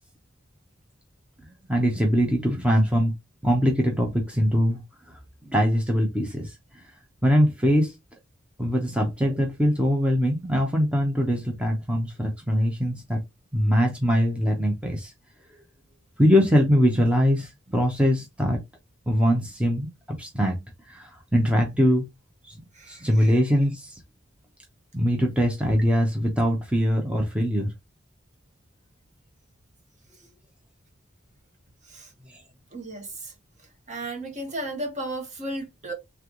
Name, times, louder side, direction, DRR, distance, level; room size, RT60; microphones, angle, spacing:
voice 1, 1.7-3.1 3.4-4.8 5.5-6.8 7.2-7.9 8.6-13.2 13.5-15.1 16.2-18.6 19.1-20.6 20.9-22.0 22.5-22.6 22.9-23.9 24.9-27.7 32.3-32.4, equal, 5° right, 0.7 m, -22 dB
voice 2, 22.7-23.1 31.9-32.1 32.7-33.3 33.9-35.9, right 1 dB, 40° right, 1.4 m, -34 dB
3.4 x 3.3 x 3.7 m
head